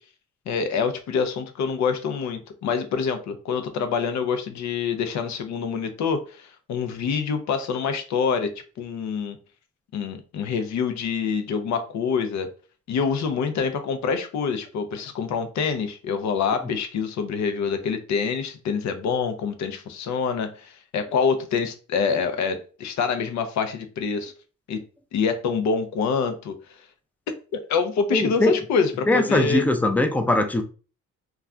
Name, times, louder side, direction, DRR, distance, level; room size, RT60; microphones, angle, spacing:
voice 1, 0.5-9.4 9.9-12.5 12.9-24.3 24.7-24.8 25.1-26.5 27.5-29.6, left 6 dB, 65° left, 0.6 m, -26 dB
voice 2, 28.1-28.5 29.1-30.6, left 2 dB, 5° left, 0.4 m, -21 dB
2.3 x 2.2 x 3.6 m
cardioid pair, 90°, 30 cm